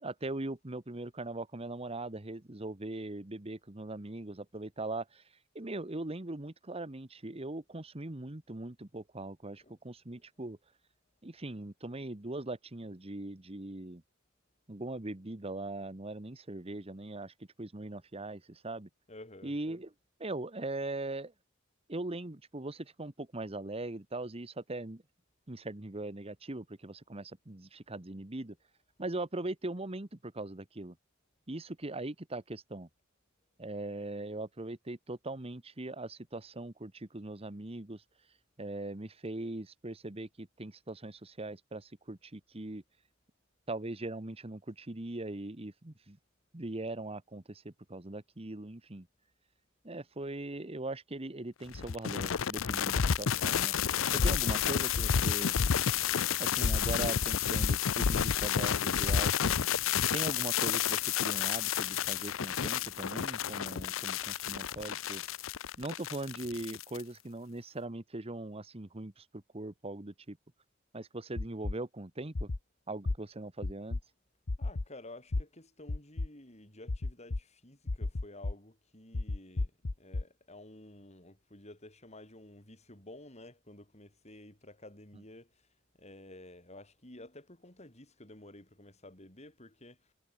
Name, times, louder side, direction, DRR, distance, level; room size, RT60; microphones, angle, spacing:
voice 1, 0.0-5.2 5.5-10.6 11.2-14.0 14.7-18.9 19.4-19.9 20.2-21.3 21.9-25.0 25.5-28.6 29.0-31.0 31.5-32.9 33.6-38.0 38.6-42.8 43.7-46.2 46.5-49.1 49.8-53.7 54.1-55.6 56.4-59.5 60.1-65.2 65.8-70.4 70.9-72.5 72.9-74.0, right 2 dB, 30° right, 1.3 m, -40 dB
voice 2, 19.1-19.5 74.6-79.7 80.0-85.7 86.0-90.1, left 1 dB, 35° left, 6.4 m, -52 dB
sound 1, 51.7-67.0, left 8 dB, 90° left, 0.6 m, -30 dB
sound 2, 71.4-71.7 72.3-72.6 73.0-73.2 73.6-74.0 74.5-74.8 75.3-75.4 75.9-76.3 76.9-77.4 77.9-78.5 79.1-80.2, left 2 dB, 70° left, 1.0 m, -32 dB
head